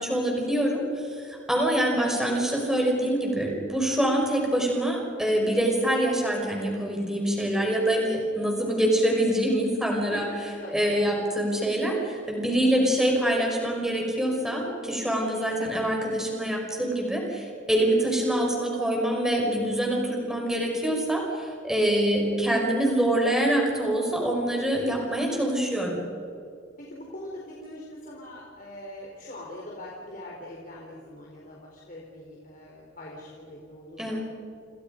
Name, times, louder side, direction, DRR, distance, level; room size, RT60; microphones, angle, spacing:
voice 1, 0.0-10.3 10.7-26.0 34.0-34.2, right 1 dB, 5° right, 0 dB, 5.6 m, -25 dB
voice 2, 1.5-1.8 10.0-10.9 18.0-18.1 24.3-24.5 26.8-34.2, left 1 dB, 45° left, -3 dB, 4.2 m, -42 dB
29.0 x 29.0 x 5.3 m, 2.3 s
head